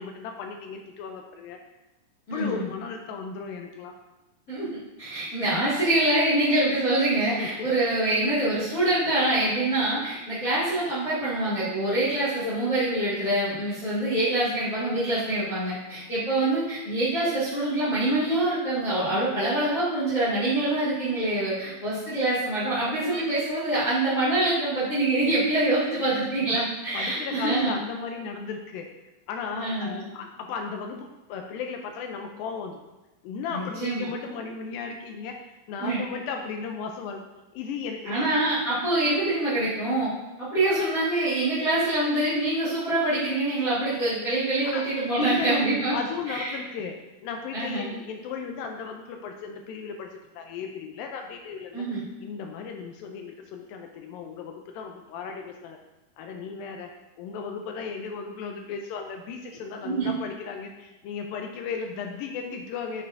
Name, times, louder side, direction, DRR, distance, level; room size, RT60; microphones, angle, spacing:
voice 1, 0.0-1.6 2.3-3.9 7.4-7.7 12.4-12.6 26.5-28.9 29.3-32.8 33.2-35.4 35.7-37.2 37.5-38.3 44.3-44.4 44.7-44.9 45.2-45.7 45.9-47.0 47.2-51.9 52.2-55.8 56.2-56.9 57.2-63.0, left 5 dB, 80° left, 3 dB, 2.2 m, -35 dB
voice 2, 2.3-2.6 4.5-4.7 5.0-27.7 29.5-30.0 33.5-34.0 35.8-36.0 38.0-40.1 40.4-45.9 46.3-46.5 47.5-47.9 51.7-52.0 59.8-60.1, right 1 dB, 25° left, -11 dB, 2.2 m, -25 dB
8.9 x 6.7 x 2.6 m, 1.0 s
omnidirectional pair, 4.3 m